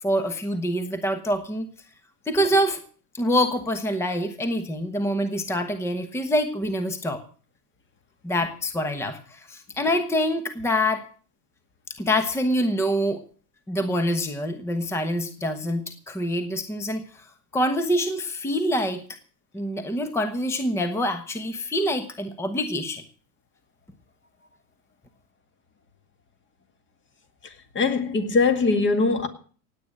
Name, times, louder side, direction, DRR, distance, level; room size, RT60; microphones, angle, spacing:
voice 1, 0.0-1.7 2.3-2.8 3.1-7.2 8.2-11.0 12.0-13.2 13.7-17.2 17.5-19.0 19.5-23.0, equal, 5° left, 1.1 m, -25 dB
voice 2, 27.4-29.3, left 4 dB, 25° left, 2.1 m, -22 dB
17.5 x 9.0 x 6.5 m
supercardioid pair, 120°, 48 cm